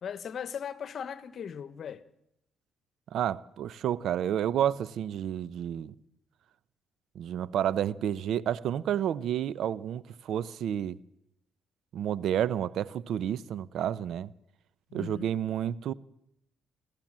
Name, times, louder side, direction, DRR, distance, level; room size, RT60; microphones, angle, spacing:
voice 1, 0.0-2.0 14.9-15.3, left 7 dB, 60° left, 1.1 m, -38 dB
voice 2, 3.1-5.9 7.1-11.0 11.9-14.3 14.9-15.9, right 10 dB, 75° right, 0.7 m, -30 dB
29.0 x 13.0 x 7.5 m
cardioid pair, 90°, 0 cm